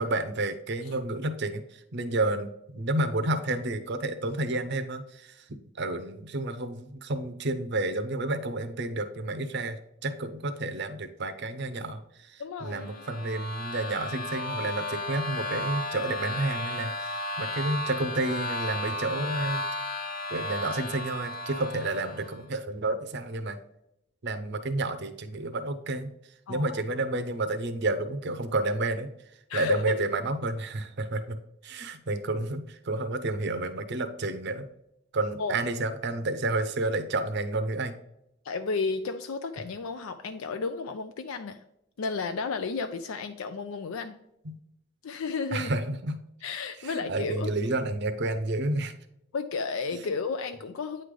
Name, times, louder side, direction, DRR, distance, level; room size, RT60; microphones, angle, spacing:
voice 1, 0.0-5.4 5.8-19.6 20.3-23.6 24.2-26.1 26.5-29.1 29.5-31.4 31.6-34.7 35.1-38.0 44.4-44.6 45.5-46.2 46.8-48.9, right 2 dB, 55° right, 9 dB, 0.7 m, -30 dB
voice 2, 12.4-13.0 26.5-26.8 29.5-30.0 35.4-35.6 38.4-41.6 42.0-44.2 45.0-45.7 46.4-47.5 49.3-51.0, left 4 dB, 85° left, 7 dB, 0.4 m, -32 dB
sound 1, 12.7-22.4, left 2 dB, 45° left, 0.9 m, -34 dB
9.0 x 3.3 x 3.7 m, 0.83 s
head